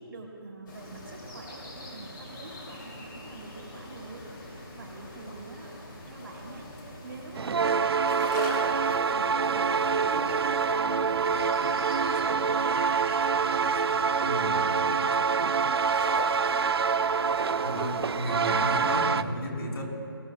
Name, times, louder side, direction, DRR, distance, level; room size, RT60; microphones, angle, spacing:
voice 1, 0.0-6.7 7.0-8.0 8.5-11.4 11.9-16.6, right 3 dB, 65° right, -2 dB, 3.0 m, -45 dB
sound 1, 0.7-19.0, left 1 dB, 60° left, 2.7 m, -43 dB
sound 2, 7.4-19.2, right 5 dB, 85° right, 0.4 m, -26 dB
voice 2, 14.2-14.6 17.6-19.8, equal, 75° left, -2 dB, 3.5 m, -33 dB
19.0 x 14.0 x 2.3 m, 2.5 s
hypercardioid pair, 175°, 13 cm